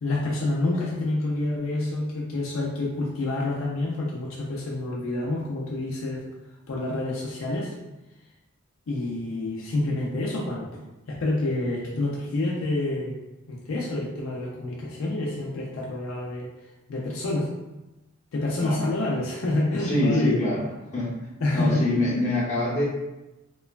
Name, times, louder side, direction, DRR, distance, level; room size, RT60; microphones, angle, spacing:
voice 1, 0.0-6.3 6.7-7.7 8.9-10.8 11.1-13.2 13.5-16.5 16.9-17.5 18.3-20.4 21.4-21.8, left 2 dB, 70° left, -4 dB, 0.4 m, -27 dB
voice 2, 19.8-20.6 20.9-21.1 21.5-22.8, left 1 dB, 35° left, -6 dB, 0.7 m, -25 dB
3.0 x 2.2 x 2.3 m, 1.0 s
head